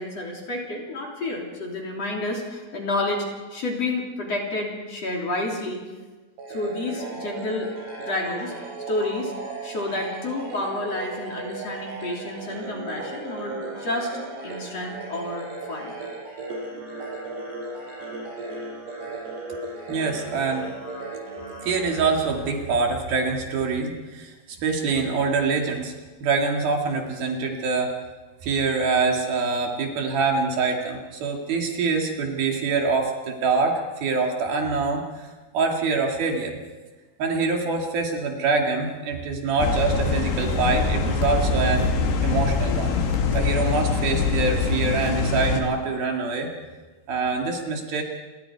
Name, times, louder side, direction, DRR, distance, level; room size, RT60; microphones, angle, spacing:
voice 1, 0.0-3.3 3.5-5.8 6.5-7.7 8.0-8.5 8.9-9.3 9.6-14.1 14.4-16.0 16.7-16.8, left 2 dB, 40° left, -1 dB, 4.2 m, -30 dB
sound 1, 6.4-23.1, right 3 dB, 85° right, 6.8 m, -36 dB
voice 2, 19.9-20.7 21.6-25.9 26.2-27.9 28.4-35.3 35.5-36.6 37.2-41.8 42.2-43.0 43.3-46.5 47.1-48.0, right 4 dB, 65° right, 1 dB, 4.0 m, -25 dB
sound 2, 39.6-45.6, left 5 dB, 80° left, 4.1 m, -24 dB
29.0 x 23.0 x 4.8 m, 1.3 s
omnidirectional pair, 4.7 m